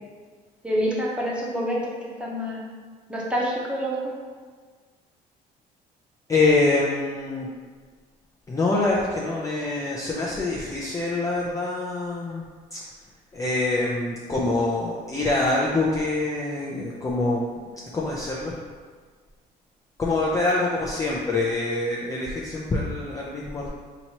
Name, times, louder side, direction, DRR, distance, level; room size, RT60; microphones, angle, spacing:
voice 1, 0.6-2.6 3.1-4.0, equal, 5° right, -4 dB, 0.9 m, -27 dB
voice 2, 6.3-7.5 8.5-12.4 12.7-12.8 13.3-17.5 17.9-18.5 20.0-23.7, left 2 dB, 20° left, -4 dB, 0.5 m, -25 dB
4.2 x 2.9 x 2.9 m, 1.5 s
cardioid pair, 110°, 17 cm